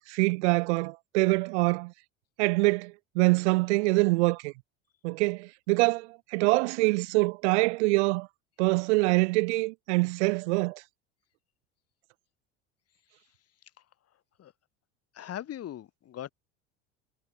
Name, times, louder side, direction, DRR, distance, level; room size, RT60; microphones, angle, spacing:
voice 1, 0.0-1.9 2.4-4.5 5.0-8.3 8.6-10.8, right 25 dB, 75° right, 1.7 m, -25 dB
voice 2, 15.1-16.3, left 11 dB, 45° left, 4.0 m, -39 dB
hypercardioid pair, 90°, 35 cm